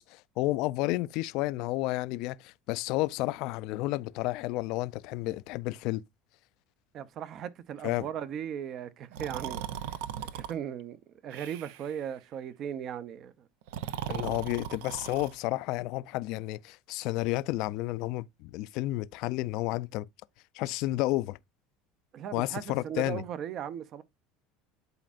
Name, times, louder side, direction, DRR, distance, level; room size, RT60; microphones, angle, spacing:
voice 1, 0.0-6.0 7.8-8.1 14.1-20.1 20.5-21.4 22.3-23.2, left 18 dB, 65° left, 0.4 m, -31 dB
voice 2, 6.9-9.6 10.3-13.3 22.1-24.0, right 9 dB, 45° right, 0.7 m, -37 dB
Breathing, 9.1-10.5 11.3-12.0 13.6-15.4, right 10 dB, 80° right, 0.5 m, -38 dB
10.5 x 4.2 x 2.5 m
supercardioid pair, 125°, 0 cm